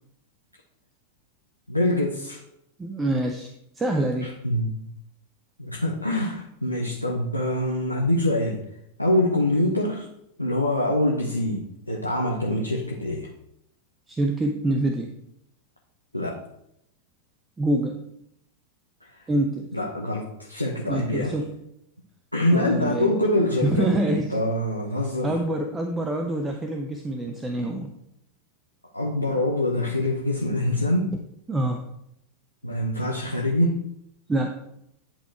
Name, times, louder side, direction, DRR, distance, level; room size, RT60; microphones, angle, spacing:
voice 1, 1.7-2.4 4.2-4.8 5.6-8.6 9.0-10.1 10.4-13.3 16.1-16.4 19.1-19.2 19.7-21.4 22.3-25.4 28.9-31.1 32.6-33.8, left 1 dB, 85° left, -1 dB, 0.9 m, -25 dB
voice 2, 2.8-3.5 3.8-4.3 14.1-15.1 17.6-18.1 19.3-19.7 20.9-21.6 22.5-23.2 23.6-24.4 25.2-27.9 31.5-31.8 34.3-34.5, right 1 dB, 15° right, 4 dB, 0.7 m, -26 dB
10.5 x 4.3 x 4.5 m, 0.78 s
figure-of-eight pair, 90°, 0 cm